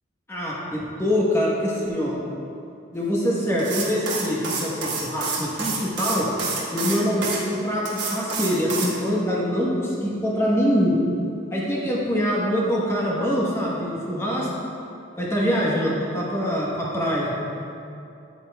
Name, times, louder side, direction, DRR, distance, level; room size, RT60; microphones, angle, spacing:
voice 1, 0.3-2.2 2.9-6.3 6.7-11.0 11.5-14.5 15.2-17.7, equal, 15° left, -5 dB, 1.0 m, -24 dB
sound 1, 3.6-7.4 7.9-8.9, right 4 dB, 60° right, 1.2 m, -28 dB
9.0 x 8.2 x 2.2 m, 2.7 s
head